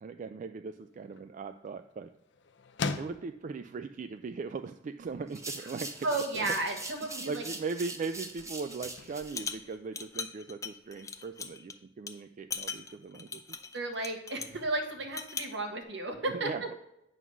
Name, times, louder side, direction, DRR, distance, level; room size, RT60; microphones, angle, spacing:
voice 1, 0.0-2.1 3.0-6.1 6.3-6.5 7.1-13.4 16.3-16.7, right 4 dB, 45° right, 9 dB, 0.3 m, -39 dB
sound 1, 0.7-10.5, left 4 dB, 70° left, 0.6 m, -44 dB
sound 2, 5.3-9.4, right 2 dB, 15° right, 0.8 m, -42 dB
voice 2, 6.0-7.4 13.7-16.5, right 2 dB, 70° right, 4 dB, 1.3 m, -33 dB
sound 3, 8.7-9.0 9.3-11.7 12.1-12.2 12.5-14.6 15.0-15.6, left 5 dB, 20° left, 0.5 m, -39 dB
9.3 x 3.9 x 6.1 m, 0.87 s
head